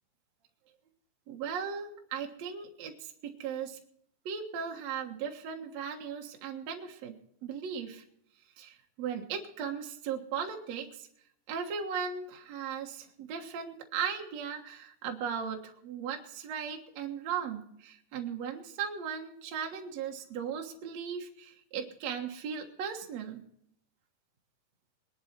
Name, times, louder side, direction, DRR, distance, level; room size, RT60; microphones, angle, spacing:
voice 1, 1.3-3.8 4.2-7.1 7.4-8.0 8.6-11.1 11.5-23.4, right 7 dB, 65° right, 2 dB, 1.6 m, -37 dB
21.0 x 11.0 x 4.4 m, 0.70 s
omnidirectional pair, 5.3 m